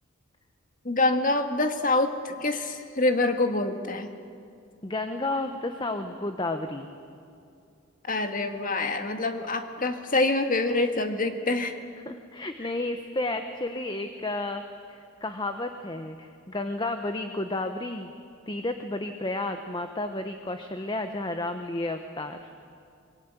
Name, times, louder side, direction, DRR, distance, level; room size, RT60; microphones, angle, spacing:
voice 1, 0.8-4.1 8.0-11.8, left 2 dB, 40° left, 6 dB, 1.8 m, -26 dB
voice 2, 4.8-6.9 12.1-14.6 14.9-18.1 18.5-22.7, left 2 dB, 20° left, 7 dB, 1.0 m, -32 dB
25.5 x 21.5 x 9.1 m, 2.5 s
head